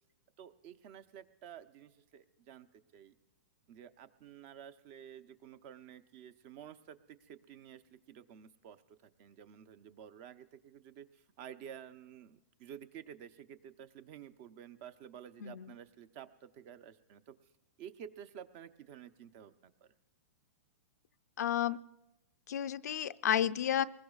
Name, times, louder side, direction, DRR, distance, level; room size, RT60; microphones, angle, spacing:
voice 1, 0.4-2.7 2.9-3.1 3.7-17.3 17.8-19.9, right 9 dB, 40° right, 13 dB, 0.7 m, -52 dB
voice 2, 15.4-15.7 21.4-21.8 22.5-23.9, left 10 dB, 80° left, 13 dB, 0.5 m, -32 dB
23.5 x 20.0 x 2.4 m, 0.92 s
hypercardioid pair, 140°, 9 cm